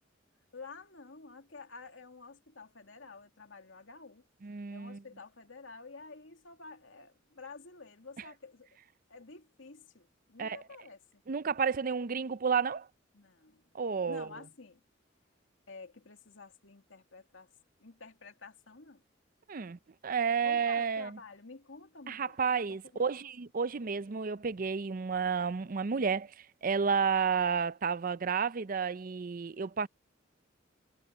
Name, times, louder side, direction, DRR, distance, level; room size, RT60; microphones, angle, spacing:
voice 1, 0.5-4.2 4.7-8.7 9.1-11.2 13.1-13.7 14.0-14.8 15.7-17.5 17.8-19.0 20.4-22.4 22.7-23.2, left 4 dB, 85° left, 2.4 m, -50 dB
voice 2, 4.4-5.0 10.4-10.6 11.3-12.9 13.7-14.3 19.5-21.2 22.1-26.3 26.6-29.9, right 6 dB, 45° right, 0.5 m, -31 dB
head